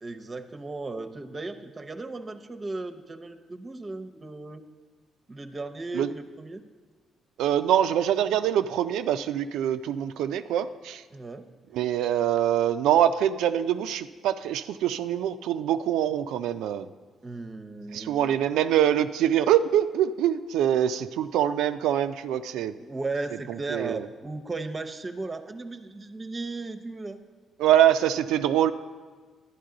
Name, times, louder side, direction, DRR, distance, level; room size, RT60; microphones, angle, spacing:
voice 1, 0.0-4.6 5.3-6.6 11.1-11.5 17.2-18.4 22.8-27.2, right 3 dB, 30° right, 8 dB, 0.7 m, -36 dB
voice 2, 7.4-11.0 11.7-16.9 17.9-22.7 23.7-24.0 27.6-28.7, right 10 dB, 90° right, 9 dB, 0.3 m, -24 dB
11.0 x 10.5 x 3.8 m, 1.4 s
cardioid pair, 90°, 0 cm